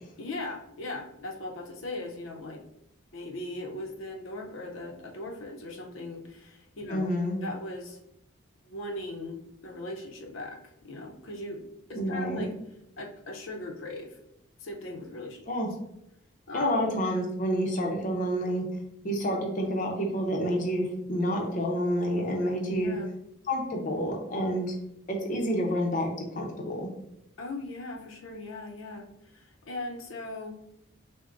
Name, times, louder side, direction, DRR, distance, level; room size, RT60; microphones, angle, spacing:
voice 1, 0.2-2.6 3.1-7.1 7.4-8.0 8.6-11.6 11.9-12.5 13.0-14.2 14.6-15.4 16.5-16.8 22.7-23.1 27.4-30.6, left 2 dB, 75° left, 2 dB, 0.6 m, -39 dB
voice 2, 6.9-7.4 12.0-12.5 15.5-15.7 16.5-18.6 19.0-23.0 23.5-24.7 25.1-26.1 26.4-26.9, equal, 40° left, 0 dB, 0.7 m, -28 dB
6.3 x 2.1 x 2.5 m, 0.81 s
head